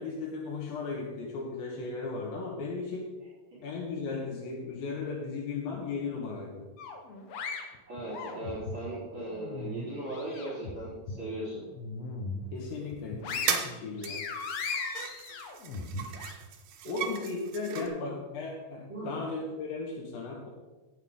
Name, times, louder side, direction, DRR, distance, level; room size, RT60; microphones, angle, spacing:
voice 1, 0.0-3.1 3.6-6.7 12.5-14.3 16.9-20.5, left 4 dB, 80° left, 0 dB, 3.0 m, -36 dB
sound 1, 6.8-8.8 9.2-10.7 11.1-11.2 11.7-12.5 12.9-16.3, left 4 dB, 60° left, 1.9 m, -37 dB
voice 2, 7.9-11.6 16.8-17.1 17.7-17.9 18.9-19.2, right 1 dB, 35° right, -9 dB, 4.6 m, -38 dB
sound 2, 12.8-12.9 13.5-13.8 14.0-17.9, right 8 dB, 70° right, 1.8 m, -37 dB
17.5 x 6.8 x 3.7 m, 1.2 s
omnidirectional pair, 4.2 m